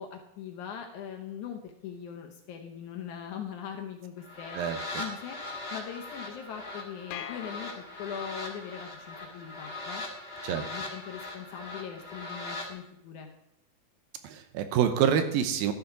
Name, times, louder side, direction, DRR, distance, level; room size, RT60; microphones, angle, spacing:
voice 1, 0.0-10.0 10.5-13.3, left 8 dB, 70° left, 3 dB, 2.0 m, -41 dB
sound 1, 4.2-12.7, left 2 dB, 40° left, 0.8 m, -40 dB
sound 2, 7.1-8.5, left 9 dB, 85° left, 2.8 m, -43 dB
voice 2, 14.2-15.7, right 8 dB, 80° right, 9 dB, 2.6 m, -26 dB
12.0 x 7.1 x 6.0 m, 0.81 s
omnidirectional pair, 4.3 m